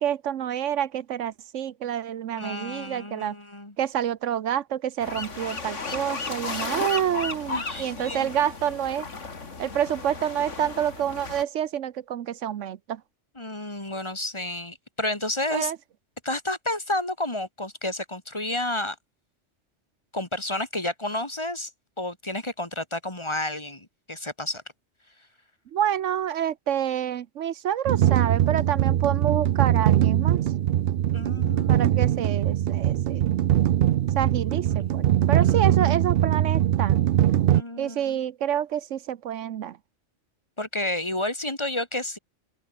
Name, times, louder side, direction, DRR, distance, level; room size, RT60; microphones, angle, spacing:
voice 1, 0.0-3.3 3.8-9.1 9.6-13.0 15.5-15.8 25.7-30.4 31.7-33.3 34.2-37.0 37.8-39.8, right 10 dB, 80° right, 1.1 m, -28 dB
voice 2, 2.4-3.7 7.5-8.3 13.4-15.7 16.2-19.0 20.1-21.7 22.0-24.6 31.1-31.9 34.7-35.1 35.4-35.7 37.5-38.2 40.6-42.2, left 1 dB, 25° left, 2.3 m, -31 dB
sound 1, 5.0-11.4, left 4 dB, 75° left, 2.8 m, -34 dB
sound 2, 27.9-37.6, right 11 dB, 60° right, 0.7 m, -22 dB
open air
omnidirectional pair, 1.3 m